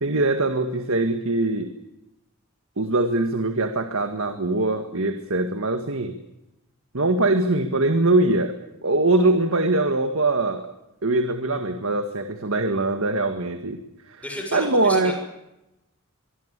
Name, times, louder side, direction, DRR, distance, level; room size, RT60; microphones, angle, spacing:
voice 1, 0.0-1.7 2.8-6.1 6.9-8.5 8.8-10.7 11.0-13.8 14.5-15.1, right 2 dB, 65° right, 7 dB, 1.9 m, -22 dB
voice 2, 14.2-15.1, left 1 dB, 5° left, 2 dB, 6.4 m, -32 dB
23.5 x 23.5 x 8.4 m, 0.91 s
head